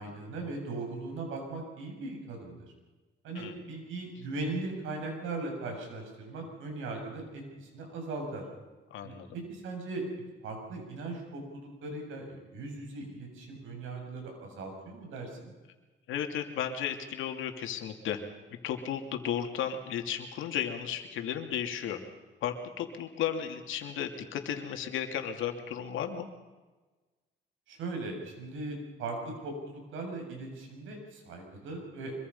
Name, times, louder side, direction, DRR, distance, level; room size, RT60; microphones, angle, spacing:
voice 1, 0.0-2.7 3.2-8.5 9.0-15.5 27.7-32.1, right 2 dB, 85° right, 2 dB, 7.2 m, -39 dB
voice 2, 8.9-9.3 16.1-18.2 18.6-22.0 22.4-26.3, left 9 dB, 85° left, 5 dB, 2.8 m, -34 dB
25.0 x 23.5 x 5.6 m, 1.2 s
cardioid pair, 90°, 20 cm